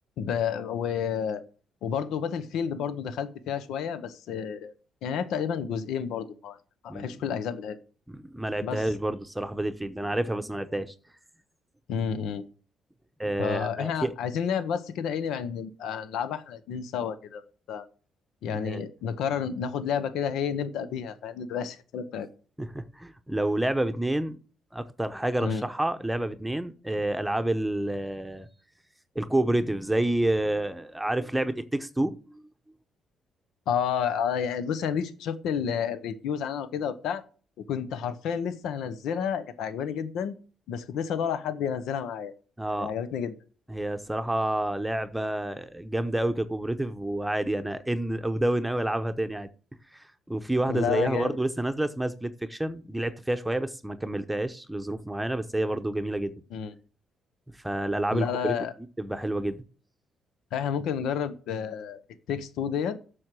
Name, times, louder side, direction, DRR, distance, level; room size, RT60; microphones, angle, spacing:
voice 1, 0.2-1.4 1.8-4.7 5.0-6.6 6.8-7.8 8.6-8.8 11.9-12.4 13.4-17.4 17.7-17.9 18.4-22.3 25.4-25.6 33.7-37.2 37.7-40.3 40.7-42.3 42.7-43.4 50.7-51.4 56.5-56.7 58.1-58.7 60.5-62.0 62.3-63.0, left 7 dB, 85° left, 0.8 m, -30 dB
voice 2, 8.1-10.9 13.2-14.1 18.6-18.8 22.6-24.4 24.7-28.5 29.1-32.4 42.6-42.9 43.7-49.5 49.9-56.4 57.6-58.5 59.0-59.6, right 1 dB, 5° right, 0.8 m, -29 dB
7.7 x 6.4 x 7.6 m
cardioid pair, 90°, 0 cm